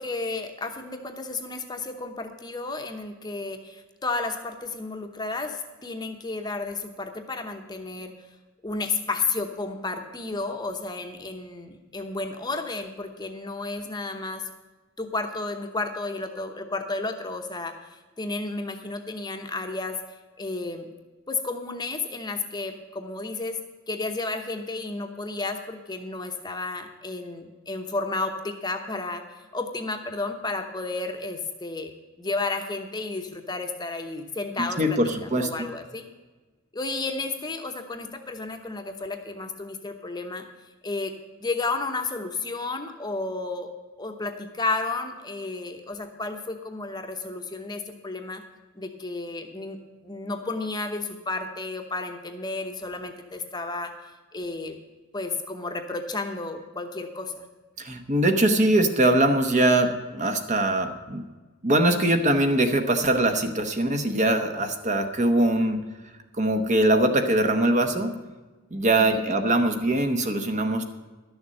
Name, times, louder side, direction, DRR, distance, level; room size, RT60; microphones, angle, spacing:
voice 1, 0.0-8.1 8.6-14.4 15.0-17.8 18.2-20.0 20.4-20.9 21.3-23.6 23.9-29.2 29.5-31.9 32.2-36.0 36.7-40.4 40.8-41.1 41.4-43.7 44.0-48.4 48.8-49.8 50.0-53.9 54.3-54.8 55.1-57.5 69.0-69.2, left 3 dB, 20° left, 5 dB, 0.9 m, -32 dB
voice 2, 34.6-35.7 57.8-61.3 61.6-65.8 66.4-68.1 68.7-70.8, right 1 dB, 35° right, 7 dB, 1.0 m, -22 dB
12.0 x 7.0 x 7.6 m, 1.2 s
head